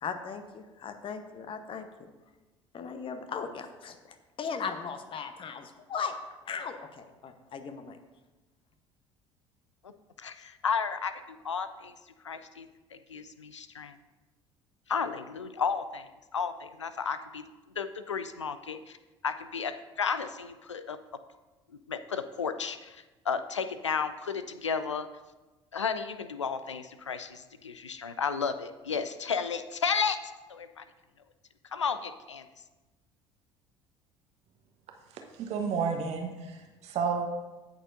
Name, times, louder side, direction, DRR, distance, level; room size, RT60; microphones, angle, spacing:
voice 1, 0.0-2.1 2.7-6.2 6.5-8.0, left 6 dB, 35° left, 8 dB, 0.9 m, -38 dB
voice 2, 10.2-11.9 12.2-12.7 12.9-13.9 14.9-17.4 17.8-19.0 19.2-21.0 21.9-25.1 25.7-30.8 31.7-32.4, left 6 dB, 80° left, 11 dB, 0.4 m, -33 dB
voice 3, 35.4-37.3, right 5 dB, 45° right, 3 dB, 1.0 m, -31 dB
17.0 x 6.5 x 2.6 m, 1.2 s
figure-of-eight pair, 60°, 15 cm